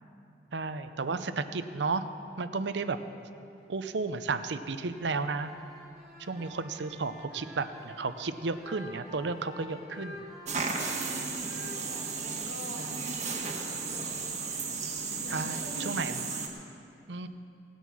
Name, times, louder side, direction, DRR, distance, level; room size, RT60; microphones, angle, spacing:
voice 1, 0.5-2.0 2.4-3.0 3.7-5.5 6.2-10.2 12.8-12.9 15.3-16.2 17.1-17.3, right 4 dB, 70° right, 11 dB, 0.6 m, -33 dB
sound 1, 4.8-14.6, left 1 dB, ahead, 2.2 m, -50 dB
sound 2, 10.5-16.5, right 4 dB, 40° right, 1.5 m, -34 dB
voice 2, 10.7-14.1 14.6-14.7 15.2-16.0, equal, 85° left, -3 dB, 3.1 m, -44 dB
18.0 x 9.2 x 6.2 m, 2.6 s
head